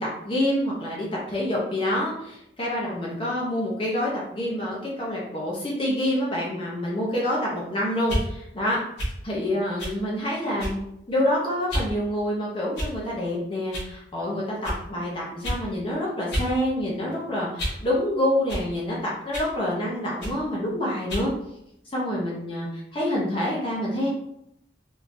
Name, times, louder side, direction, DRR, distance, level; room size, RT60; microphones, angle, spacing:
voice 1, 0.0-8.8 9.2-10.8 11.1-21.3 21.9-24.1, left 1 dB, 30° left, -5 dB, 0.7 m, -27 dB
sound 1, 8.0-8.3 9.0-9.2 9.8-10.0 10.6-10.9 11.7-11.9 12.7-13.1 13.7-13.9 14.6-14.8 15.4-15.6 16.3-16.5 16.9-17.9 18.5-18.7 19.3-19.5 20.2-20.4 21.1-21.3, equal, 70° left, 1.4 m, -30 dB
3.7 x 2.8 x 2.5 m, 0.79 s
head